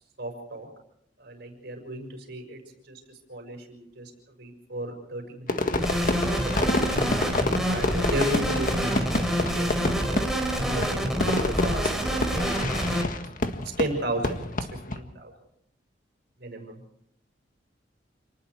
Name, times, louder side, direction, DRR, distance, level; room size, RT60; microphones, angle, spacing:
voice 1, 0.2-0.7 1.2-3.0 3.3-4.1 4.4-6.7 7.6-10.3 10.7-13.1 13.8-14.4 14.9-15.3 16.4-16.8, right 1 dB, 60° right, 4 dB, 6.3 m, -35 dB
Fireworks, 5.5-15.0, left 2 dB, 50° left, 1.7 m, -29 dB
sound 1, 5.8-13.0, equal, ahead, 4.2 m, -27 dB
28.5 x 20.0 x 4.8 m, 0.73 s
head